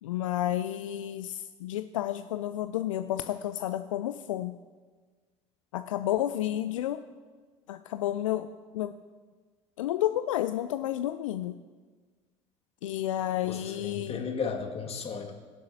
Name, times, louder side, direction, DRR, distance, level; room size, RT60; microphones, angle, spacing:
voice 1, 0.0-4.5 5.7-7.0 7.7-8.5 8.7-9.0 9.8-11.6 12.8-14.2, left 12 dB, 75° left, 10 dB, 0.4 m, -31 dB
voice 2, 13.4-15.4, left 5 dB, 35° left, 0 dB, 2.1 m, -35 dB
22.5 x 7.6 x 2.8 m, 1.4 s
figure-of-eight pair, 65°, 17 cm